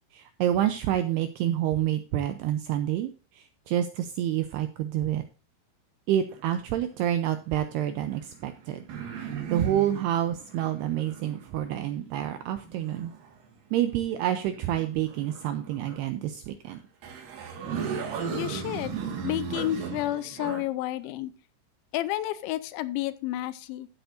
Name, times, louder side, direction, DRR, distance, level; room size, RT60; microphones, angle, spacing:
voice 1, 0.1-5.2 6.1-8.8 9.2-13.1 13.7-16.8, right 11 dB, 90° right, 9 dB, 2.3 m, -28 dB
sound 1, 6.3-7.2 8.0-13.5 14.3-16.1 16.7-16.8 17.0-20.7, right 6 dB, 55° right, 3.1 m, -37 dB
voice 2, 18.3-21.3 21.9-23.9, left 14 dB, 80° left, 14 dB, 2.9 m, -31 dB
15.0 x 8.0 x 2.6 m, 0.34 s
omnidirectional pair, 5.4 m